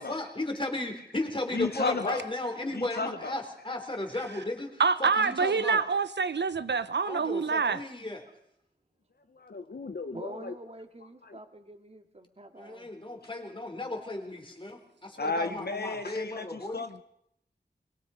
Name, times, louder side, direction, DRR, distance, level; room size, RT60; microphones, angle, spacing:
voice 1, 0.0-5.8 7.0-8.3 12.6-16.8, left 2 dB, 30° left, 3 dB, 4.1 m, -35 dB
voice 2, 1.5-2.2 2.7-3.4 9.4-10.5 15.2-17.0, left 4 dB, 65° left, 9 dB, 1.0 m, -34 dB
voice 3, 4.8-7.8, right 5 dB, 75° right, 14 dB, 0.8 m, -26 dB
voice 4, 10.1-12.9 16.4-16.5, right 2 dB, 35° right, 5 dB, 2.2 m, -46 dB
23.5 x 22.0 x 5.2 m, 0.76 s
wide cardioid pair, 75°, 18 cm